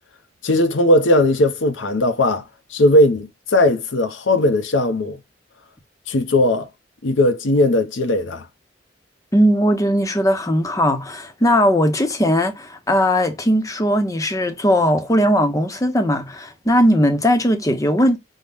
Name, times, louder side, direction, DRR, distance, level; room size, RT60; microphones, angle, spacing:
voice 1, 0.4-5.2 6.1-6.7 7.0-8.5, left 1 dB, 80° left, 0.7 m, -18 dB
voice 2, 9.3-18.2, equal, 15° left, 0.6 m, -18 dB
5.5 x 2.1 x 3.4 m
head